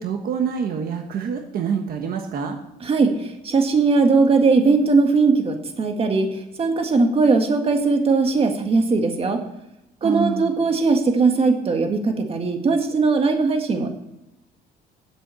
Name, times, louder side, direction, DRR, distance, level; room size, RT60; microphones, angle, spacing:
voice 1, 0.0-2.6 10.0-10.6, right 6 dB, 60° right, 4 dB, 1.4 m, -26 dB
voice 2, 2.8-9.4 10.0-13.9, right 4 dB, 35° right, 5 dB, 1.8 m, -19 dB
9.8 x 7.8 x 6.9 m, 0.89 s
cardioid pair, 110°, 17 cm